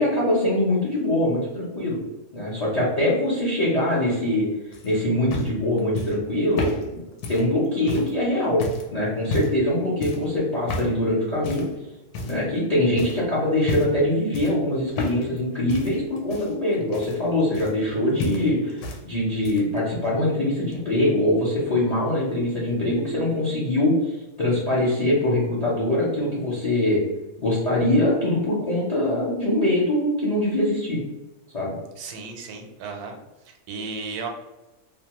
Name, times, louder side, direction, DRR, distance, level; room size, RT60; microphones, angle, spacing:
voice 1, 0.0-2.0 2.3-4.5 4.8-7.0 7.3-8.6 8.9-11.7 12.3-27.0 27.4-31.0 31.5-31.8, left 1 dB, 55° left, -6 dB, 0.4 m, -23 dB
sound 1, 4.7-8.2 8.6-8.9 9.2-9.7 10.0-10.3 10.7-11.0 11.4-11.7 12.1-12.6 13.0-13.2 13.6-14.0 14.3-15.4 15.7-17.9 18.2-19.0 19.3-19.8 20.7-20.8, left 1 dB, 80° left, 1.1 m, -31 dB
voice 2, 32.0-33.2 33.4-34.3, right 4 dB, 85° right, 2 dB, 1.1 m, -34 dB
2.7 x 2.1 x 2.9 m, 1.1 s
omnidirectional pair, 1.6 m